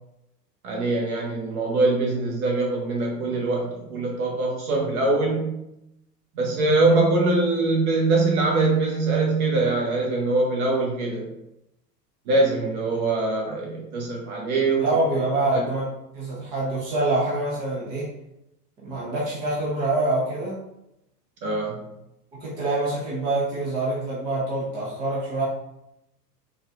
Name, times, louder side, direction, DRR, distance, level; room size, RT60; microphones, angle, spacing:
voice 1, 0.6-5.6 6.3-11.3 12.3-14.9 15.5-15.6 21.4-21.8, right 3 dB, 55° right, -1 dB, 1.2 m, -23 dB
voice 2, 14.8-15.9 16.1-18.1 18.8-20.6 22.4-25.4, right 2 dB, 10° right, -7 dB, 0.3 m, -25 dB
4.0 x 2.3 x 2.4 m, 0.85 s
figure-of-eight pair, 90°, 49 cm